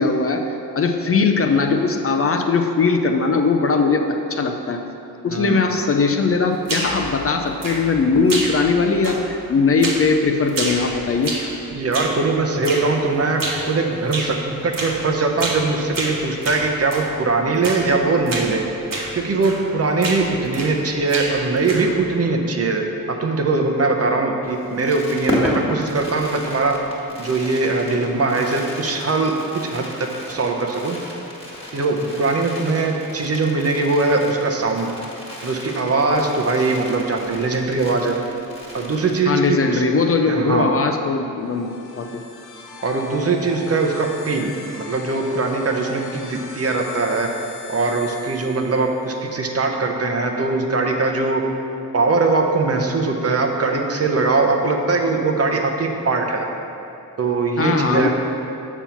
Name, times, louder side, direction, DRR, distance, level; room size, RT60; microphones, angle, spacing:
voice 1, 0.0-4.8 5.2-11.4 39.3-42.2 57.6-58.1, left 4 dB, 40° left, 4 dB, 0.5 m, -20 dB
voice 2, 5.3-5.7 11.7-13.4 13.7-18.6 19.1-22.8 23.2-26.7 27.2-31.0 31.7-34.9 35.4-38.2 38.7-39.8 40.3-40.7 42.8-51.4 51.9-56.5 57.2-58.1, right 3 dB, 40° right, 3 dB, 0.8 m, -21 dB
elastic booinnng, 6.7-7.1 7.6-8.0 8.3-8.8 9.0-9.4 9.8-10.1 10.5-11.6 11.9-12.2 12.6-12.9 13.4-13.7 14.1-14.3 14.7-15.0 15.4-15.7 15.9-17.1 17.6-17.9 18.3-18.5 18.9-19.1 19.4-19.7 20.0-20.8 21.1-22.0, right 2 dB, 65° right, 1.2 m, -28 dB
Fireworks, 24.4-39.6 39.9-40.0 40.2-40.5, left 1 dB, 15° left, 1.6 m, -33 dB
sound 1, 41.4-49.1, left 4 dB, 85° left, 0.9 m, -39 dB
7.0 x 4.4 x 5.7 m, 2.8 s
cardioid pair, 85°, 37 cm